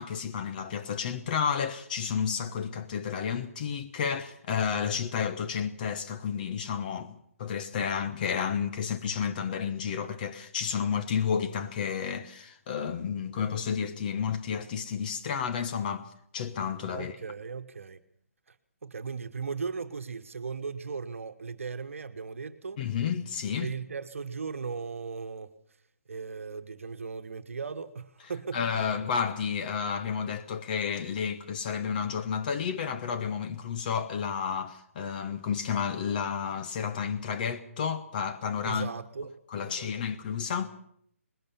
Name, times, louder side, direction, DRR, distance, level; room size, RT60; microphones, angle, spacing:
voice 1, 0.0-16.1 16.3-17.1 22.8-23.7 28.5-38.9 39.5-40.7, left 7 dB, 35° left, 1.1 m, -31 dB
voice 2, 16.8-18.0 18.5-18.6 18.8-22.8 23.6-25.5 26.1-29.0 38.6-39.3 39.6-39.9, right 5 dB, 65° right, 1.2 m, -37 dB
20.0 x 19.0 x 7.0 m
figure-of-eight pair, 145°, 8 cm